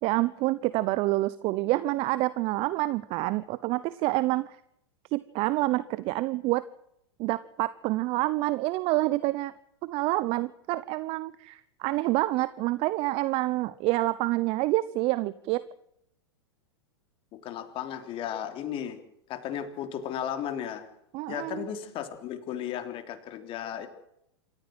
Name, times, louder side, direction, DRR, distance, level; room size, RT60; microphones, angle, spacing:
voice 1, 0.0-4.6 5.1-6.6 7.2-9.5 9.8-15.6 21.1-21.7, right 18 dB, 40° right, 17 dB, 0.9 m, -27 dB
voice 2, 17.3-19.0 19.3-20.9 21.3-23.9, left 9 dB, 40° left, 8 dB, 3.4 m, -35 dB
27.0 x 14.5 x 7.7 m, 0.77 s
hypercardioid pair, 105°, 15 cm